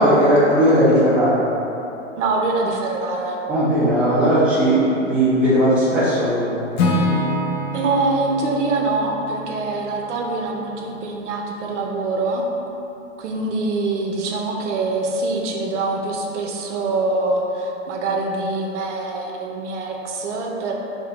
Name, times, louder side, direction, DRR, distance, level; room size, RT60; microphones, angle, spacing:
voice 1, 0.0-1.4 3.5-6.6, equal, 5° right, -11 dB, 0.4 m, -17 dB
voice 2, 2.2-3.4 7.7-12.5 13.2-20.7, right 3 dB, 65° right, 0 dB, 0.6 m, -24 dB
Acoustic guitar / Strum, 6.8-10.8, left 1 dB, 70° left, 0.7 m, -25 dB
2.8 x 2.7 x 3.5 m, 2.9 s
hypercardioid pair, 125°, 38 cm